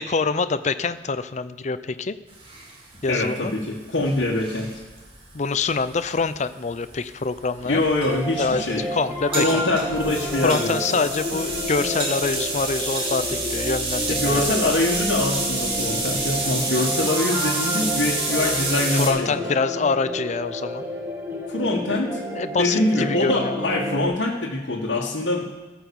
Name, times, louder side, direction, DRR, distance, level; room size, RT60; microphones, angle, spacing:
voice 1, 0.0-2.1 3.0-3.5 5.3-7.8 8.4-9.6 10.4-14.8 18.7-20.8 22.3-23.7, left 4 dB, 40° left, 13 dB, 0.5 m, -25 dB
sound 1, 2.3-19.1, right 2 dB, 30° right, 2.6 m, -29 dB
voice 2, 3.1-4.8 7.6-8.9 9.4-11.0 14.1-19.4 21.5-22.2 22.5-25.5, left 2 dB, 80° left, -6 dB, 1.6 m, -24 dB
sound 2, 8.0-24.0, left 1 dB, 15° right, 2.0 m, -31 dB
16.0 x 5.9 x 7.1 m, 1.3 s
head